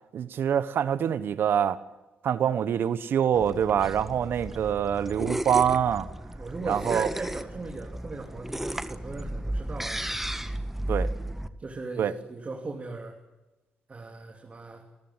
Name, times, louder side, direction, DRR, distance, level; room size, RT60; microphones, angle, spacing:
voice 1, 0.1-1.8 2.2-6.1 6.7-7.1 10.9-11.1 12.0-12.1, right 8 dB, 65° right, 14 dB, 1.3 m, -25 dB
sound 1, 3.3-11.5, right 1 dB, 5° right, 1.6 m, -34 dB
voice 2, 6.4-10.0 11.6-13.1 13.9-14.8, right 3 dB, 35° right, 1 dB, 3.3 m, -38 dB
28.0 x 14.0 x 8.1 m, 1.1 s
supercardioid pair, 60°, 4 cm